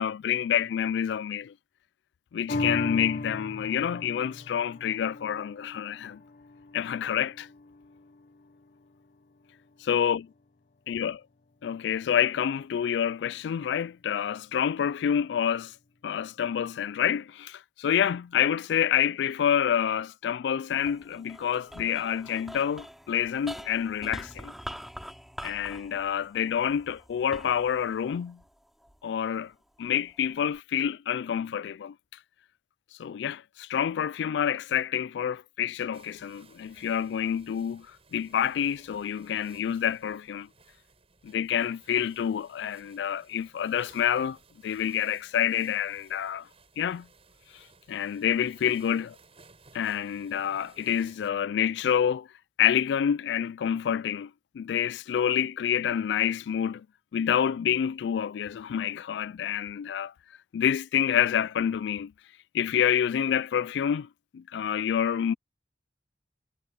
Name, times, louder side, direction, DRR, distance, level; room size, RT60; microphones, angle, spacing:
voice 1, 0.0-1.5 2.3-6.2 6.7-7.5 9.9-10.2 10.9-11.2 11.6-15.7 16.0-24.5 25.4-28.4 29.0-29.5 29.8-31.9 33.0-37.9 38.1-40.5 41.2-44.4 44.6-46.5 46.8-47.1 47.9-49.2 49.7-52.3 52.6-56.9 57.1-60.1 60.5-62.1 62.5-65.3, left 8 dB, 80° left, 0.3 m, -28 dB
sound 1, 2.5-9.2 9.6-9.7, left 2 dB, 55° left, 0.7 m, -37 dB
sound 2, 20.8-29.3 29.8-30.6, equal, ahead, 2.7 m, -45 dB
sound 3, 35.9-51.3, right 4 dB, 35° right, 7.1 m, -59 dB
head